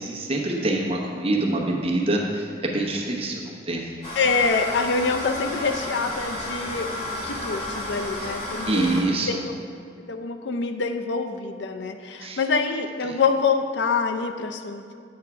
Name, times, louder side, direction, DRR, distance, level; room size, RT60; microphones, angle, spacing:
voice 1, 0.0-3.8 8.7-9.5 12.2-12.4, right 2 dB, 35° right, -1 dB, 0.9 m, -25 dB
sound 1, 4.0-9.0, left 1 dB, 30° left, 1.5 m, -32 dB
voice 2, 4.2-6.9 7.2-8.9 9.3-9.4 10.1-14.9, left 4 dB, 90° left, 7 dB, 0.5 m, -25 dB
8.5 x 3.6 x 5.9 m, 2.3 s
head